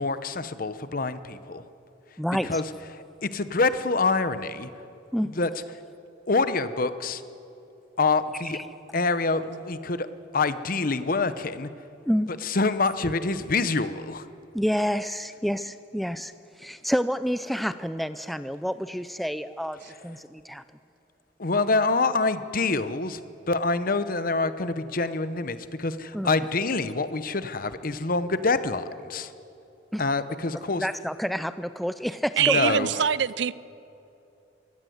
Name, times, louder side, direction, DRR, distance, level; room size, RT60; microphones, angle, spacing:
voice 1, 0.0-1.6 2.4-2.6 2.9-4.7 5.3-5.5 6.3-7.2 8.0-8.6 8.9-10.1 10.3-11.7 12.4-14.3 21.4-23.2 23.5-29.3 30.0-30.9 32.4-33.1, left 3 dB, 50° left, 12 dB, 0.9 m, -26 dB
voice 2, 2.2-2.6 5.1-5.3 12.0-12.3 14.5-16.3 16.6-19.8 20.0-20.6 26.1-26.4 29.9-30.0 30.8-32.8, equal, ahead, 12 dB, 0.4 m, -28 dB
voice 3, 32.4-33.5, right 8 dB, 65° right, 19 dB, 0.5 m, -23 dB
23.0 x 17.0 x 8.0 m, 2.8 s
head